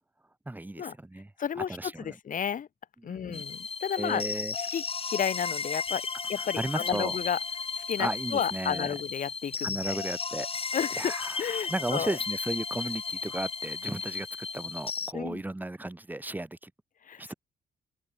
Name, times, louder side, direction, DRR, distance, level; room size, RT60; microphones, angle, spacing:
voice 1, 0.5-1.3 1.6-2.2 3.0-3.4 4.0-4.5 6.4-7.2 8.0-8.9 9.6-10.5 10.9-16.7 17.2-17.3, right 2 dB, 10° right, 4.0 m, -35 dB
voice 2, 1.4-2.7 3.0-4.2 4.6-7.4 7.8-10.0 10.7-11.1 11.4-12.2 15.1-15.4 17.1-17.3, left 8 dB, 50° left, 3.0 m, -32 dB
sound 1, 3.3-15.1, left 5 dB, 35° left, 4.9 m, -34 dB
cardioid pair, 120°, 17 cm